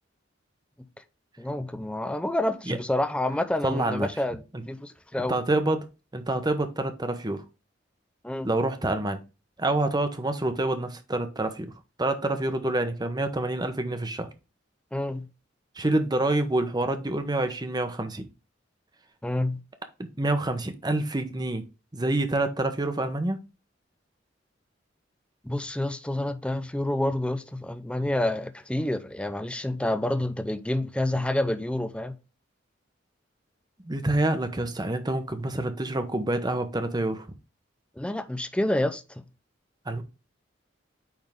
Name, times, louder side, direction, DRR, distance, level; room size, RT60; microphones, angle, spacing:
voice 1, 1.4-5.4 8.2-8.5 14.9-15.3 19.2-19.6 25.4-32.2 38.0-39.2, left 1 dB, 5° left, 0.5 m, -28 dB
voice 2, 3.6-4.1 5.3-5.9 6.1-7.4 8.4-9.2 9.6-11.7 12.0-14.3 15.8-18.3 20.2-21.6 21.9-23.4 33.8-37.3 39.9-40.0, right 2 dB, 20° right, 0.9 m, -27 dB
9.0 x 3.6 x 3.6 m
head